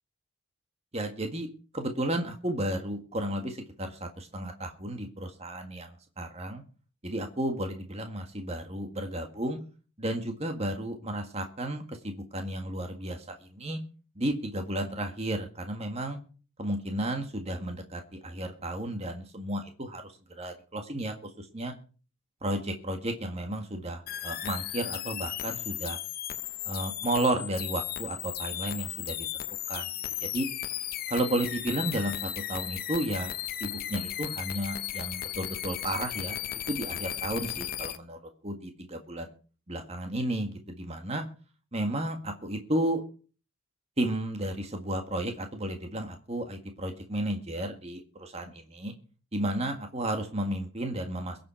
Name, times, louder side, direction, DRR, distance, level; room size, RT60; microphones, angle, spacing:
voice 1, 0.9-1.5 1.7-6.6 7.0-9.6 10.0-13.8 14.2-16.2 16.6-20.0 20.4-21.7 22.4-26.0 26.6-29.3 29.7-29.9 30.2-30.5 31.1-33.3 33.6-36.4 36.7-39.3 39.7-41.2 41.7-43.0 44.0-48.4 48.7-48.9 49.3-51.4, right 1 dB, 30° right, 5 dB, 1.8 m, -33 dB
sound 1, 24.1-38.0, left 12 dB, 45° left, 0.7 m, -36 dB
22.5 x 7.7 x 4.5 m, 0.38 s
head